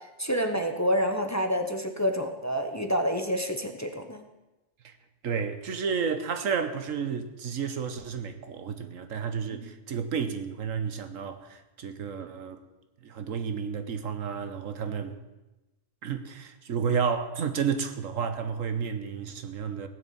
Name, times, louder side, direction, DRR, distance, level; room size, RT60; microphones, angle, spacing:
voice 1, 0.2-4.2 9.5-9.7, equal, 15° left, 1.0 m, -28 dB
voice 2, 5.2-12.6 13.0-15.2 16.0-19.9, right 6 dB, 85° right, 1.5 m, -31 dB
17.0 x 6.6 x 8.7 m
omnidirectional pair, 1.3 m